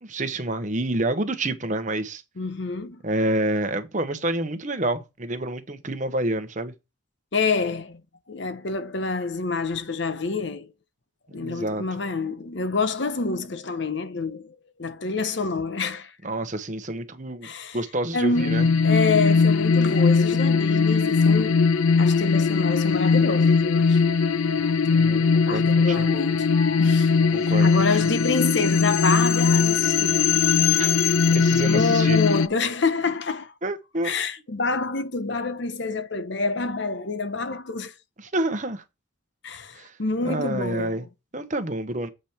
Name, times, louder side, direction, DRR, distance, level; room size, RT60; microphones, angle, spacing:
voice 1, 0.0-2.2 3.0-6.7 11.3-11.8 16.2-17.5 17.7-18.7 24.8-26.1 27.2-27.7 28.0-28.1 30.7-32.2 33.6-34.1 38.3-38.8 39.8-39.9 40.2-41.0 41.3-42.1, right 1 dB, 35° right, 1.0 m, -28 dB
voice 2, 2.4-3.0 7.3-8.0 8.3-10.7 11.3-16.1 17.4-17.8 18.1-21.6 22.0-24.0 25.5-30.4 31.6-33.5 34.0-37.9 39.4-41.1, left 4 dB, 60° left, 0.8 m, -27 dB
sound 1, 18.3-32.5, left 5 dB, 80° left, 0.4 m, -20 dB
7.8 x 5.1 x 4.3 m
head